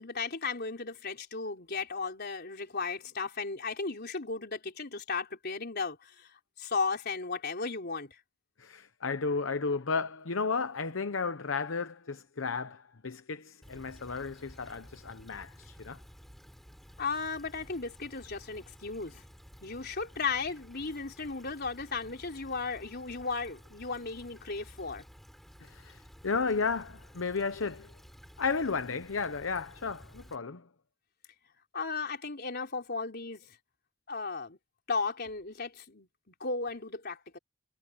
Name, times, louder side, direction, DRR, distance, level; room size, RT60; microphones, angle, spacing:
voice 1, 0.0-6.3 6.6-8.2 17.0-19.2 19.6-25.0 31.7-33.6 34.1-34.6 34.9-37.4, left 4 dB, 50° left, 4.0 m, -35 dB
voice 2, 8.6-16.0 25.6-27.9 28.4-30.6, left 4 dB, 70° left, 0.9 m, -33 dB
Stream / Trickle dribble, 13.6-30.4, equal, ahead, 7.4 m, -54 dB
head